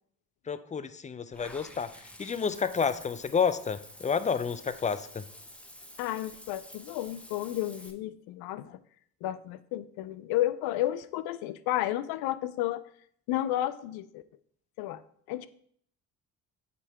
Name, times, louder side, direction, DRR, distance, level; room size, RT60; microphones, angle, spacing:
voice 1, 0.5-1.9 2.2-5.2, left 6 dB, 20° left, 13 dB, 0.5 m, -30 dB
Water / Bathtub (filling or washing), 1.3-7.9, left 1 dB, 5° left, 0.9 m, -50 dB
voice 2, 6.0-8.8 9.2-12.8 13.3-14.2 14.8-15.0 15.3-15.5, left 14 dB, 75° left, 15 dB, 0.5 m, -32 dB
8.2 x 3.8 x 3.4 m, 0.64 s
hypercardioid pair, 50°, 38 cm